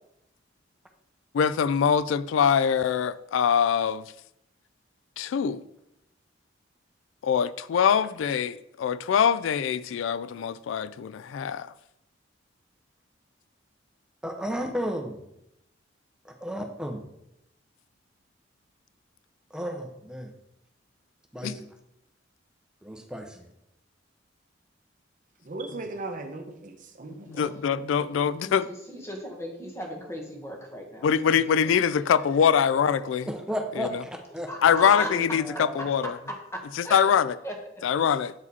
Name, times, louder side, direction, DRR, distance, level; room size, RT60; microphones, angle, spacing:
voice 1, 1.3-4.0 5.2-5.6 7.2-11.7 21.4-21.5 27.2-28.7 31.0-33.3 33.8-34.0 34.6-36.1 36.8-37.4 37.8-38.3, left 7 dB, 85° left, 0.3 m, -23 dB
voice 2, 14.2-15.2 16.2-17.0 19.5-20.3 21.3-21.7 22.8-23.5 33.3-34.8 35.0-35.8, equal, 5° right, 0.7 m, -33 dB
voice 3, 25.4-27.5, right 2 dB, 45° right, 0.8 m, -37 dB
voice 4, 28.0-31.4 31.9-32.2 34.5-37.1 37.4-37.9, equal, 15° left, 1.3 m, -38 dB
8.3 x 4.9 x 4.1 m
head